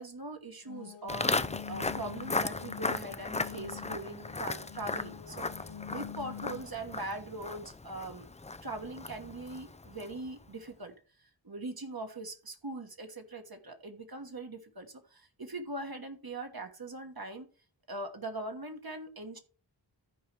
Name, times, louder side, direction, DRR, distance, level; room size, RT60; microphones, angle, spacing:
voice 1, 0.0-1.3 1.7-8.3 8.6-10.9 11.2-17.5 17.9-19.4, right 2 dB, 50° right, 5 dB, 1.3 m, -41 dB
sound 1, 0.6-6.6, left 9 dB, 65° left, 0.7 m, -46 dB
Walk footsteps, 1.1-10.3, left 3 dB, 15° left, 0.4 m, -37 dB
14.0 x 4.8 x 3.4 m, 0.37 s
wide cardioid pair, 45°, 46 cm